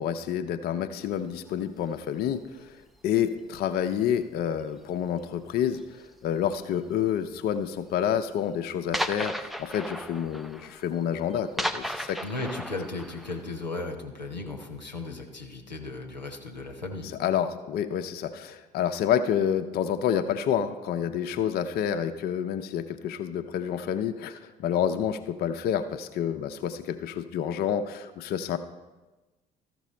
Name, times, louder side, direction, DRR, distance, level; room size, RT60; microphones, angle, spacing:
voice 1, 0.0-2.8 3.0-12.2 17.2-28.6, left 9 dB, 45° left, 8 dB, 0.5 m, -28 dB
sound 1, 1.3-1.5 2.3-2.7 2.9-3.4 3.8-4.0 4.5-4.6 4.8-4.9 5.7-6.2 7.0-7.1 7.5-7.6 7.9-8.0 8.3-8.4 8.9-13.6, equal, ahead, 0.5 m, -35 dB
voice 2, 12.2-17.1, left 2 dB, 90° left, 2 dB, 0.7 m, -36 dB
13.5 x 6.0 x 4.2 m, 1.2 s
figure-of-eight pair, 50°, 21 cm